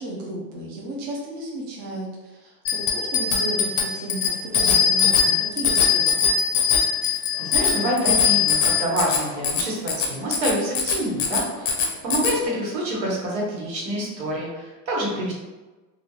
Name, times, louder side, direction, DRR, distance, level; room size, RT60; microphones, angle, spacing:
voice 1, 0.0-6.3, right 1 dB, 30° right, -3 dB, 0.4 m, -33 dB
Bicycle bell, 2.6-12.4, left 7 dB, 45° left, 0.6 m, -21 dB
voice 2, 7.4-15.3, right 1 dB, 85° right, -3 dB, 1.2 m, -27 dB
3.0 x 2.4 x 2.2 m, 1.2 s
supercardioid pair, 150°, 49 cm